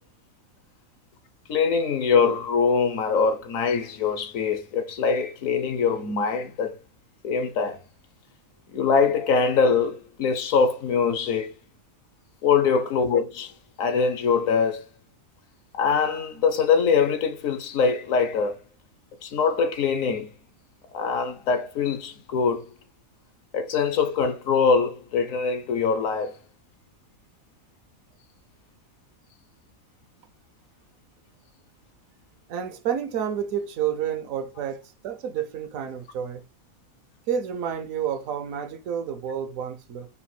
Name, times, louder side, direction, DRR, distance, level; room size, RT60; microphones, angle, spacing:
voice 1, 1.5-6.8 7.2-7.8 8.7-11.5 12.4-13.5 13.8-14.9 15.7-18.6 19.2-20.3 20.9-22.6 23.5-26.3, left 5 dB, 75° left, 1.1 m, -23 dB
voice 2, 32.5-36.4 37.3-40.1, right 8 dB, 75° right, 1.1 m, -30 dB
4.1 x 2.2 x 4.2 m
omnidirectional pair, 1.5 m